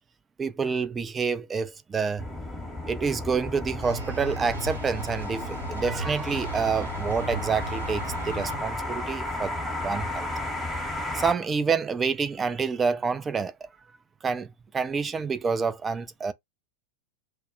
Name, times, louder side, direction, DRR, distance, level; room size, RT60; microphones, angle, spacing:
voice 1, 0.4-2.3 2.9-9.5 9.8-10.3 11.1-13.5 14.2-14.5 14.7-16.3, right 5 dB, 15° right, 0.4 m, -28 dB
sound 1, 2.2-11.3, left 1 dB, 10° left, 0.8 m, -33 dB
sound 2, 3.8-9.0, right 3 dB, 75° right, 0.9 m, -37 dB
2.1 x 2.0 x 3.7 m
figure-of-eight pair, 90°, 0 cm